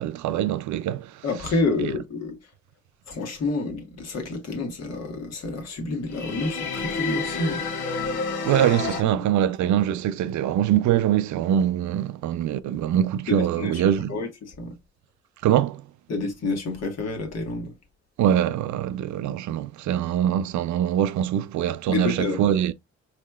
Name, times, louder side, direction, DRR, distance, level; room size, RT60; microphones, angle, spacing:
voice 1, 0.0-1.2 1.8-1.9 8.4-14.1 15.4-15.8 18.2-22.7, right 10 dB, 70° right, 0.5 m, -23 dB
voice 2, 1.2-2.4 3.1-7.6 13.3-14.8 16.1-17.7 21.9-22.5, left 3 dB, 55° left, 1.6 m, -29 dB
sound 1, 6.1-9.0, left 4 dB, 75° left, 1.3 m, -29 dB
4.8 x 3.2 x 2.3 m
cardioid pair, 90°, 30 cm